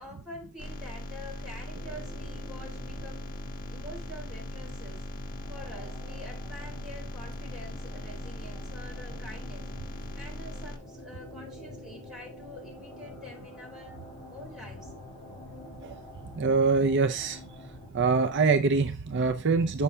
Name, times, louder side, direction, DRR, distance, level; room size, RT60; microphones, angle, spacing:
voice 1, 0.0-3.3 3.7-5.1 5.5-9.7 10.1-14.0 14.3-14.9, left 1 dB, 5° right, 4.0 m, -46 dB
sound 1, 0.6-10.8, left 1 dB, 40° left, 1.2 m, -39 dB
sound 2, 1.8-17.9, left 1 dB, 20° left, 2.9 m, -47 dB
voice 2, 16.3-17.4 17.9-19.8, right 4 dB, 55° right, 0.5 m, -24 dB
8.2 x 5.6 x 3.4 m
head